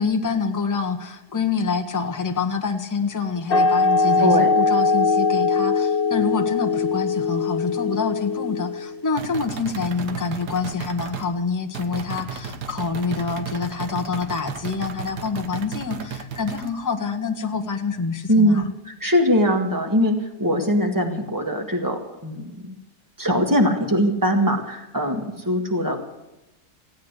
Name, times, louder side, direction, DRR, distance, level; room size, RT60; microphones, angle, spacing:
voice 1, 0.0-18.7, left 5 dB, 15° left, 3 dB, 1.0 m, -26 dB
sound 1, 3.5-8.9, left 4 dB, 40° left, 0.9 m, -21 dB
voice 2, 4.2-4.5 18.3-22.8 23.2-26.0, equal, 10° right, 3 dB, 1.9 m, -21 dB
sound 2, 9.2-11.3 11.7-16.7, right 6 dB, 75° right, 1.7 m, -34 dB
16.5 x 9.4 x 8.1 m, 0.96 s
omnidirectional pair, 1.8 m